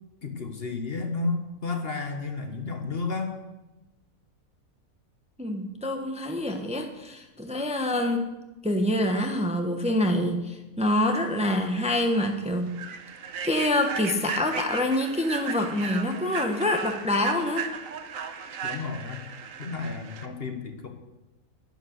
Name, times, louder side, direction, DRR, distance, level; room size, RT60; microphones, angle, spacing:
voice 1, 0.2-3.3 18.6-19.2 19.6-20.9, left 3 dB, 45° left, 5 dB, 1.4 m, -32 dB
voice 2, 5.4-8.3 8.6-12.8 13.4-17.7, left 1 dB, 5° right, 4 dB, 1.0 m, -26 dB
Human voice / Train, 11.4-11.5 12.0-12.2 12.7-20.3, right 6 dB, 70° right, 1.4 m, -36 dB
11.0 x 10.5 x 6.5 m, 1.0 s
omnidirectional pair, 1.5 m